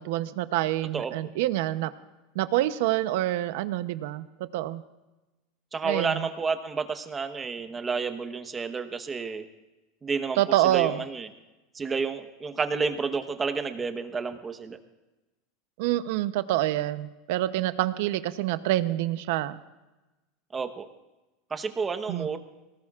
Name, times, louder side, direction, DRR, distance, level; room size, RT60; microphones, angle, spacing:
voice 1, 0.0-1.9 2.3-4.8 5.8-6.3 10.4-11.0 15.8-19.6 22.1-22.4, right 15 dB, 70° right, 13 dB, 0.7 m, -27 dB
voice 2, 5.7-9.4 10.0-11.3 11.7-14.8 20.5-20.9 21.5-22.4, right 5 dB, 20° right, 8 dB, 1.0 m, -30 dB
21.5 x 19.0 x 2.5 m, 1.1 s
supercardioid pair, 140°, 0 cm